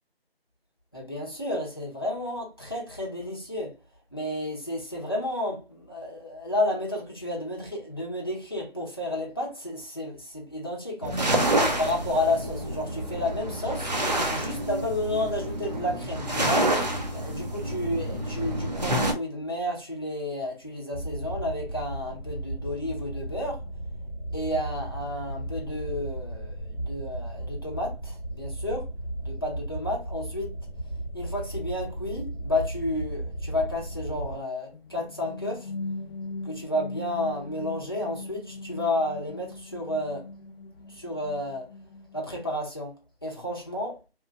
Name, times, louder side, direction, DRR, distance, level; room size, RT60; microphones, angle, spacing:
voice 1, 0.9-3.7 4.1-11.3 11.8-13.9 14.3-16.7 17.1-23.6 24.3-28.9 29.2-30.5 31.1-35.7 36.4-40.3 40.9-41.7 42.1-42.9 43.2-44.0, left 1 dB, 25° left, 0.6 m, -31 dB
sound 1, 11.0-19.1, right 1 dB, 45° right, 0.8 m, -28 dB
sound 2, 20.9-34.4, right 1 dB, 20° right, 1.0 m, -35 dB
sound 3, 34.7-42.5, left 3 dB, 65° left, 0.5 m, -40 dB
3.0 x 2.4 x 3.3 m
figure-of-eight pair, 170°, 31 cm